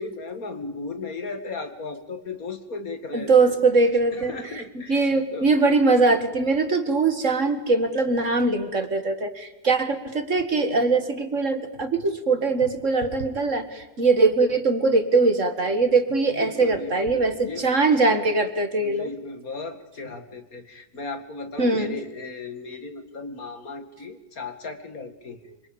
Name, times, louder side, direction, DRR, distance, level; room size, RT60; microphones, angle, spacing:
voice 1, 0.0-3.6 4.1-5.5 16.3-17.7 18.8-25.7, left 3 dB, 50° left, 9 dB, 2.5 m, -36 dB
voice 2, 3.1-4.3 4.9-19.1 21.6-22.0, right 3 dB, 45° right, 9 dB, 2.1 m, -21 dB
26.5 x 26.0 x 8.8 m, 0.96 s
omnidirectional pair, 1.9 m